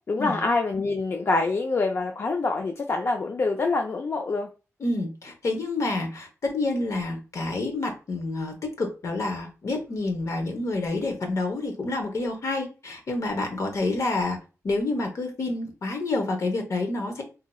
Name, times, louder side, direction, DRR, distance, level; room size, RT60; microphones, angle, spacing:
voice 1, 0.1-4.5, left 3 dB, 50° left, 3 dB, 0.4 m, -25 dB
voice 2, 4.8-14.4 14.6-17.2, left 2 dB, 65° left, 4 dB, 0.9 m, -28 dB
4.1 x 2.8 x 2.3 m, 0.33 s
wide cardioid pair, 130°, 6 cm